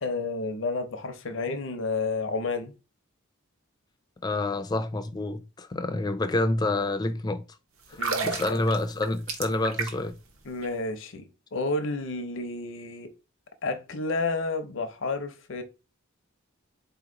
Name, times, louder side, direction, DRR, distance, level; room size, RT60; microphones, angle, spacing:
voice 1, 0.0-2.7 8.0-8.6 10.4-13.1 13.6-15.6, left 3 dB, 60° left, 0.7 m, -31 dB
voice 2, 4.2-7.4 7.9-10.2, left 2 dB, 20° left, 0.3 m, -28 dB
sound 1, 7.9-10.2 10.5-10.7, right 4 dB, 70° right, 0.9 m, -31 dB
4.0 x 2.9 x 3.7 m
head